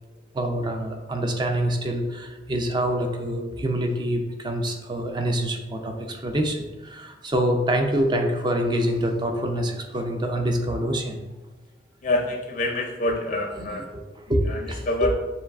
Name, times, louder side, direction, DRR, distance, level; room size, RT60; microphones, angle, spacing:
voice 1, 0.3-11.2 13.6-13.7 14.3-14.8, right 1 dB, 25° right, 3 dB, 0.4 m, -26 dB
voice 2, 12.0-13.9 14.5-15.1, left 2 dB, 45° left, 1 dB, 0.4 m, -26 dB
6.7 x 2.3 x 2.4 m, 1.2 s
head